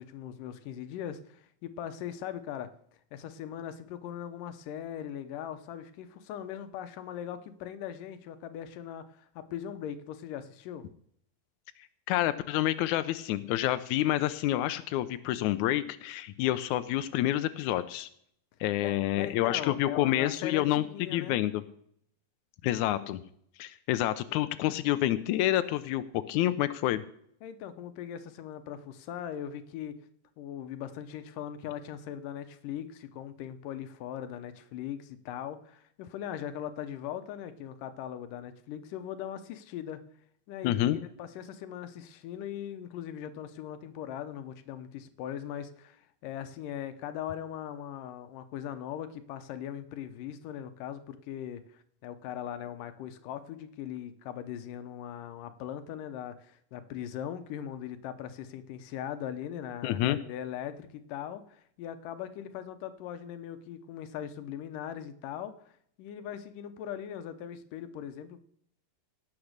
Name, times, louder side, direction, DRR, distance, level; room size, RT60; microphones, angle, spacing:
voice 1, 0.0-2.7 3.1-10.9 18.8-21.4 27.4-29.9 30.4-40.0 40.5-65.7 66.0-68.4, left 10 dB, 75° left, 11 dB, 2.3 m, -40 dB
voice 2, 12.1-18.1 18.6-20.8 21.1-21.6 22.6-23.2 23.6-27.0 40.6-41.0 59.8-60.2, left 14 dB, 90° left, 12 dB, 1.7 m, -28 dB
17.5 x 7.1 x 6.6 m, 0.67 s
omnidirectional pair, 4.1 m